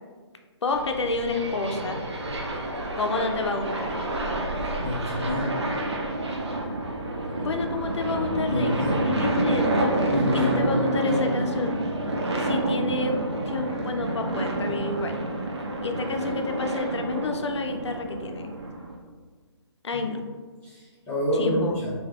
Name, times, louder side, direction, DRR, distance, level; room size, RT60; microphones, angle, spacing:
voice 1, 0.6-2.0 2.9-4.0 7.4-8.7 9.0-9.9 10.3-11.8 12.4-13.2 13.5-15.2 15.8-18.5 19.8-20.3 21.4-21.8, left 3 dB, 75° left, 4 dB, 0.4 m, -29 dB
sound 1, 0.7-19.0, right 2 dB, 70° right, 0.6 m, -28 dB
voice 2, 4.8-5.6 8.5-9.0 9.3-9.4 10.1-11.3 19.9-20.0 20.6-21.9, left 1 dB, 15° left, -13 dB, 0.8 m, -28 dB
3.1 x 2.7 x 2.4 m, 1.5 s
figure-of-eight pair, 145°, 15 cm